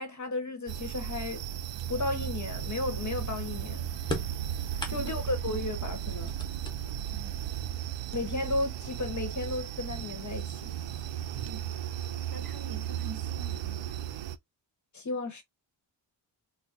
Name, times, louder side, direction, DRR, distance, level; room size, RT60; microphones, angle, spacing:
voice 1, 0.0-1.5 1.9-3.8 4.9-6.3 8.1-10.7 14.9-15.4, left 2 dB, 40° left, 1.0 m, -34 dB
sound 1, 0.7-14.4, right 10 dB, 70° right, 0.5 m, -35 dB
sound 2, 4.1-5.4 6.0-7.2 8.2-8.3 9.3-9.4 9.9-10.4, left 1 dB, 10° left, 1.1 m, -38 dB
voice 2, 7.1-7.4 11.4-11.6 12.3-13.9, right 5 dB, 50° right, 1.1 m, -46 dB
3.9 x 2.1 x 2.6 m
wide cardioid pair, 105°, 46 cm